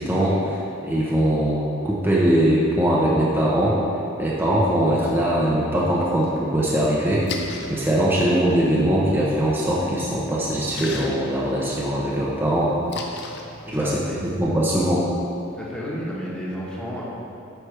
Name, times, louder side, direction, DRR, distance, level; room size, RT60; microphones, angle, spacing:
voice 1, 0.0-3.8 4.2-12.7 13.7-13.9 14.4-15.0, right 1 dB, 10° right, -6 dB, 0.7 m, -21 dB
Splash splatter, 7.0-14.4, left 3 dB, 60° left, 0.6 m, -38 dB
voice 2, 13.6-14.2 15.5-17.0, equal, 5° left, -6 dB, 1.2 m, -31 dB
9.0 x 4.9 x 3.3 m, 2.9 s
head